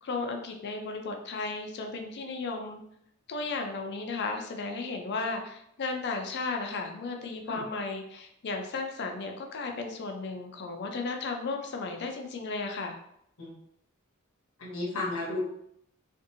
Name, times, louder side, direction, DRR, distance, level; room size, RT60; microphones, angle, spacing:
voice 1, 0.0-2.8 3.3-13.0, left 3 dB, 55° left, 4 dB, 0.4 m, -34 dB
voice 2, 14.6-15.4, left 2 dB, 75° left, -3 dB, 0.8 m, -33 dB
2.6 x 2.5 x 2.6 m, 0.74 s
head